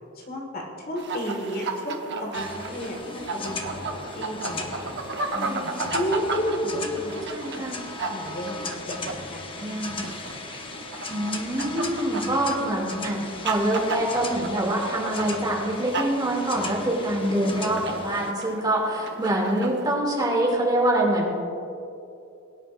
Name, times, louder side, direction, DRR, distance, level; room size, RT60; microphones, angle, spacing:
voice 1, 0.1-4.9 5.3-7.7 8.1-10.6, equal, 45° left, -1 dB, 1.8 m, -33 dB
sound 1, 1.0-20.0, right 3 dB, 55° right, 0.9 m, -35 dB
sound 2, 2.3-18.3, left 3 dB, 25° left, 0.8 m, -37 dB
voice 2, 6.7-7.8 9.6-10.0 11.1-21.3, right 1 dB, 20° right, -3 dB, 2.7 m, -25 dB
22.0 x 10.0 x 2.6 m, 2.7 s
head